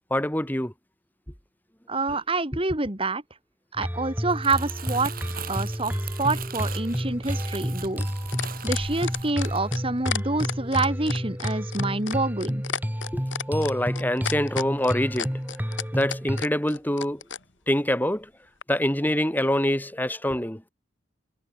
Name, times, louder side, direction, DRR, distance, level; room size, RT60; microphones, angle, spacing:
voice 1, 0.1-0.7 13.1-13.2 13.5-17.2 17.7-18.3 18.7-20.6, left 1 dB, 10° left, 3.4 m, -25 dB
voice 2, 1.9-3.2 3.7-5.1 5.5-5.9 6.2-8.1 8.6-12.6, right 3 dB, 30° right, 2.6 m, -27 dB
sound 1, 3.8-16.4, equal, 10° right, 6.4 m, -30 dB
Crumpling crinkling, 4.1-10.5 10.9-11.2, right 7 dB, 50° right, 7.9 m, -41 dB
sound 2, 6.9-17.4 18.6-18.7, left 7 dB, 85° left, 7.3 m, -33 dB
head